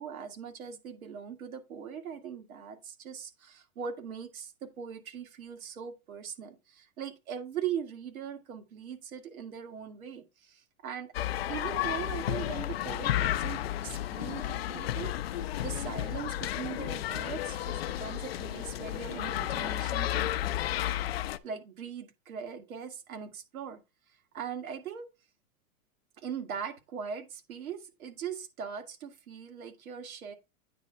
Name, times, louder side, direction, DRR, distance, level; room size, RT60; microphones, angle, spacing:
voice 1, 0.0-11.1 11.5-21.0 21.4-23.8 24.3-25.1 26.2-30.3, right 7 dB, 70° right, 2.0 m, -40 dB
sound 1, 11.1-21.4, left 13 dB, 45° left, 0.4 m, -32 dB
9.2 x 3.4 x 5.4 m
hypercardioid pair, 165°, 44 cm